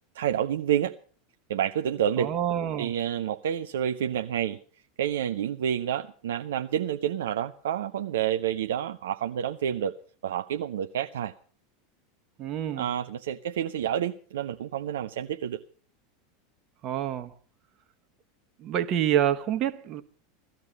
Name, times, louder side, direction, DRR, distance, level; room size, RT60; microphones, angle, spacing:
voice 1, 0.1-0.9 1.5-2.3 2.8-4.6 5.0-9.9 10.2-11.3 12.7-15.6, right 10 dB, 65° right, 0.6 m, -29 dB
voice 2, 2.2-2.9 12.4-12.9 16.8-17.3 18.6-20.0, right 11 dB, 40° right, 1.4 m, -27 dB
16.5 x 13.5 x 5.4 m
figure-of-eight pair, 85°, 0 cm